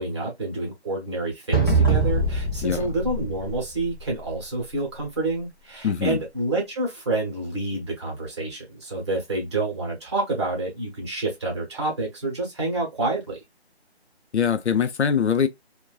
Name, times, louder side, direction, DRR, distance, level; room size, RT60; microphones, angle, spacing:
voice 1, 0.0-13.4, right 2 dB, 25° right, 0.9 m, -28 dB
sound 1, 1.5-4.2, right 3 dB, 20° left, 0.5 m, -23 dB
voice 2, 5.8-6.2 14.3-15.5, left 7 dB, 80° left, 0.6 m, -22 dB
2.5 x 2.2 x 2.2 m
figure-of-eight pair, 155°, 33 cm